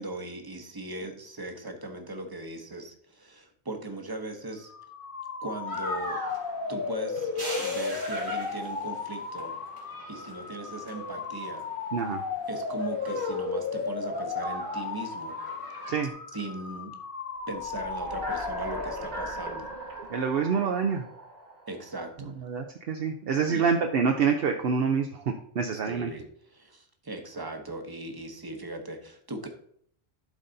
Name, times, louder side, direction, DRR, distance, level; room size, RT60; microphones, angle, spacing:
voice 1, 0.0-4.7 5.4-6.2 6.7-9.6 10.1-11.7 12.5-15.4 16.3-16.9 17.5-19.7 21.7-22.3 23.5-23.7 25.8-26.3 26.5-29.5, right 2 dB, 20° right, 5 dB, 1.0 m, -38 dB
sound 1, 4.6-19.3, left 4 dB, 55° left, 1.0 m, -34 dB
sound 2, 5.6-16.1, equal, 85° right, 2.6 m, -41 dB
voice 2, 11.9-12.2 15.9-16.1 20.1-21.1 22.4-26.1, right 6 dB, 65° right, 4 dB, 0.9 m, -27 dB
sound 3, 17.4-22.1, right 1 dB, 40° right, 1.5 m, -39 dB
11.5 x 4.1 x 3.9 m, 0.63 s
omnidirectional pair, 1.1 m